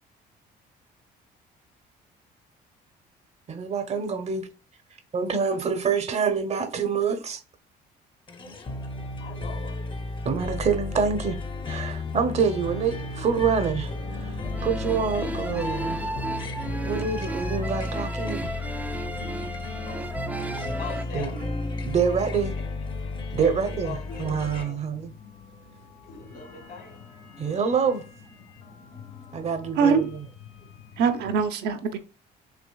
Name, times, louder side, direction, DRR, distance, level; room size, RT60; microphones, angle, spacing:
voice 1, 3.5-4.5 5.1-7.4 10.2-11.4 11.7-16.2 16.8-18.6 21.1-21.3 21.8-22.5 23.3-25.1 27.4-28.1 29.3-29.9, right 6 dB, 40° right, 0.8 m, -26 dB
sound 1, 8.3-24.6, left 2 dB, 30° left, 0.7 m, -33 dB
voice 2, 9.2-9.8 19.8-20.3 20.8-21.5 22.1-22.5 23.0-24.8 26.2-27.0, left 5 dB, 65° left, 1.7 m, -42 dB
sound 2, 11.5-31.4, left 4 dB, 85° left, 1.5 m, -44 dB
sound 3, 14.4-21.0, right 2 dB, 10° right, 0.4 m, -34 dB
voice 3, 29.7-30.1 31.0-32.0, right 6 dB, 80° right, 0.8 m, -23 dB
6.0 x 3.1 x 2.3 m
cardioid pair, 110°, 17 cm